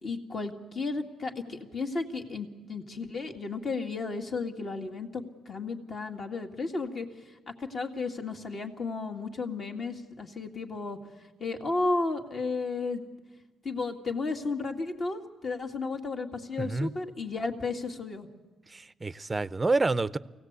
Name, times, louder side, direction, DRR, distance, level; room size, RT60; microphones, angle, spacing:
voice 1, 0.0-7.1 7.6-11.0 11.4-13.0 13.6-18.3, left 3 dB, 45° left, 2.1 m, -33 dB
voice 2, 16.6-16.9 18.7-20.2, right 3 dB, 20° right, 0.6 m, -28 dB
24.0 x 17.0 x 8.1 m
cardioid pair, 90°, 0 cm